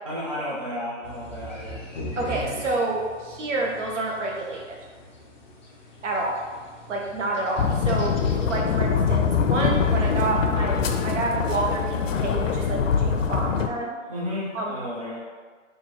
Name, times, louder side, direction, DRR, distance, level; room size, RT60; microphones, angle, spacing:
voice 1, 0.0-1.8 14.1-15.2, left 1 dB, 30° right, -7 dB, 0.4 m, -32 dB
sound 1, 1.0-10.3, left 1 dB, 35° left, 0.6 m, -41 dB
voice 2, 2.2-4.8 6.0-6.4 6.9-8.2 8.4-13.9 14.5-14.8, right 2 dB, 70° right, -1 dB, 0.9 m, -28 dB
sound 2, 7.6-13.7, left 6 dB, 85° left, 0.5 m, -23 dB
2.9 x 2.6 x 4.2 m, 1.5 s
hypercardioid pair, 170°, 38 cm